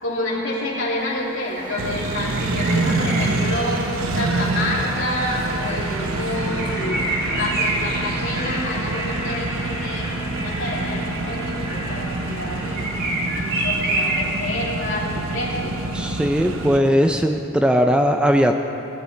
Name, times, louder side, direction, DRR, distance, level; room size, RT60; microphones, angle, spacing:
voice 1, 0.0-3.9 4.2-15.8, left 1 dB, 65° left, -5 dB, 2.8 m, -28 dB
sound 1, 1.0-13.9, right 1 dB, 20° right, 1.6 m, -35 dB
sound 2, 1.6-14.6, right 2 dB, 50° right, 1.8 m, -30 dB
Accelerating revving vroom, 1.8-16.8, right 2 dB, 85° right, 0.8 m, -27 dB
voice 2, 15.9-18.6, equal, 5° right, 4 dB, 0.4 m, -18 dB
20.0 x 11.0 x 3.3 m, 2.9 s
head